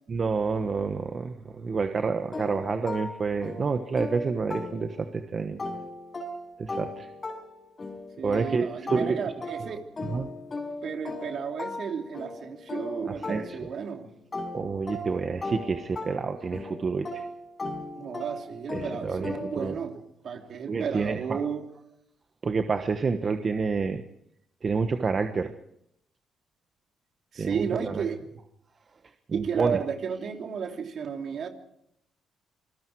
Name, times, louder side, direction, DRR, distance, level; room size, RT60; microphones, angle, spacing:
voice 1, 0.1-5.6 6.6-7.1 8.2-9.2 9.6-9.8 10.1-10.3 13.3-13.7 14.5-17.2 18.7-19.8 20.7-21.4 22.4-24.0 24.6-25.5 27.4-28.0 29.3-29.8, right 4 dB, 40° right, 7 dB, 1.3 m, -28 dB
sound 1, 2.3-5.2 5.6-13.9 14.3-19.8, left 2 dB, 30° left, 5.4 m, -37 dB
voice 2, 8.2-9.9 10.8-14.1 18.0-21.7 27.3-28.2 29.3-31.5, right 7 dB, 60° right, 4 dB, 3.0 m, -33 dB
27.0 x 20.5 x 4.7 m, 0.76 s
cardioid pair, 90°, 0 cm